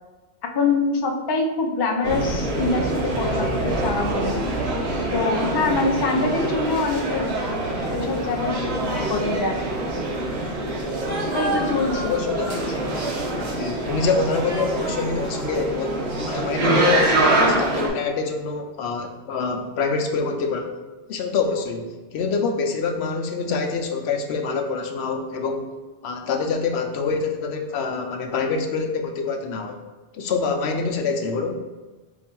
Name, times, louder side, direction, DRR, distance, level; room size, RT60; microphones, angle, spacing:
voice 1, 0.5-4.5 5.1-7.3 7.9-9.6 11.2-12.9, left 3 dB, 40° left, 2 dB, 0.3 m, -25 dB
sound 1, 2.0-17.9, right 1 dB, 80° right, 1.1 m, -25 dB
voice 2, 11.9-12.7 13.6-15.9 16.2-20.7 21.1-25.7 26.0-29.8 30.1-31.6, left 4 dB, 85° left, 4 dB, 0.9 m, -26 dB
4.6 x 2.5 x 4.4 m, 1.3 s
omnidirectional pair, 1.1 m